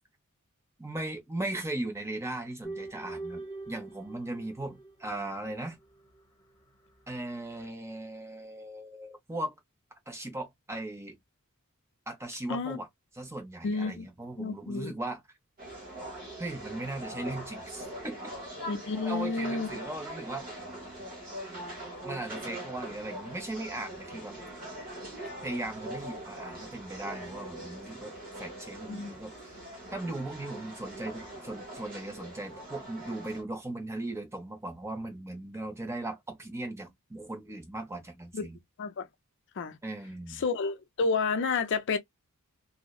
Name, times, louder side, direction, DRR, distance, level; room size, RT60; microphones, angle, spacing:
voice 1, 0.8-5.8 7.1-9.6 10.1-11.2 12.1-12.9 13.2-15.2 16.4-18.2 19.0-20.6 22.0-24.4 25.4-29.3 29.9-38.6 39.8-40.4, right 2 dB, 10° right, 0.6 m, -38 dB
sound 1, 2.6-5.5 5.8-6.4, right 3 dB, 15° left, 1.1 m, -43 dB
voice 2, 13.6-14.0 14.4-14.9 18.7-19.7 28.9-29.1 38.3-38.4 38.8-39.1 39.6-39.8 40.3-42.0, left 4 dB, 55° left, 0.5 m, -30 dB
sound 2, 15.6-33.4, right 1 dB, 40° right, 1.3 m, -42 dB
2.8 x 2.0 x 2.3 m
head